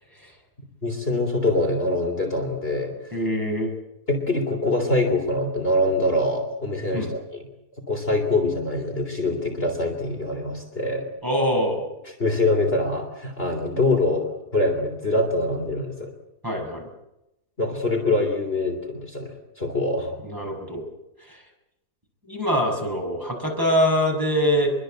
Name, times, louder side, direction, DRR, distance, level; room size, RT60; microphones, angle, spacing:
voice 1, 0.8-3.0 4.1-7.2 7.9-11.1 12.1-16.1 17.6-20.1, left 2 dB, 35° left, 2 dB, 3.6 m, -24 dB
voice 2, 3.1-3.7 6.9-7.1 11.2-11.9 16.4-16.9 20.2-20.8 21.3-21.4 22.3-24.7, equal, 10° right, 1 dB, 6.6 m, -24 dB
25.0 x 23.0 x 7.9 m, 0.89 s
omnidirectional pair, 1.7 m